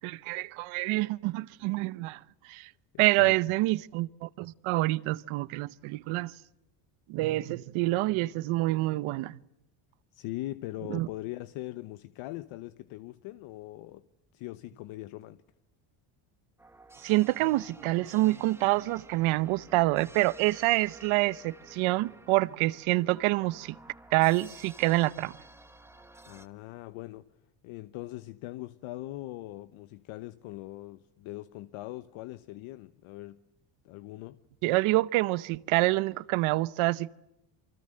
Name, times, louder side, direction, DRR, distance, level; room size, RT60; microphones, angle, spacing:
voice 1, 0.0-2.7 3.0-6.3 7.1-9.4 10.9-11.1 17.0-23.8 24.1-25.3 34.6-37.1, right 19 dB, 80° right, 1.0 m, -27 dB
voice 2, 2.9-3.4 10.1-14.0 14.3-15.4 26.3-27.3 27.6-33.4 33.8-34.4, left 17 dB, 75° left, 1.0 m, -41 dB
sound 1, 16.6-26.5, right 2 dB, 5° right, 1.2 m, -52 dB
28.5 x 24.5 x 7.7 m
cardioid pair, 130°, 48 cm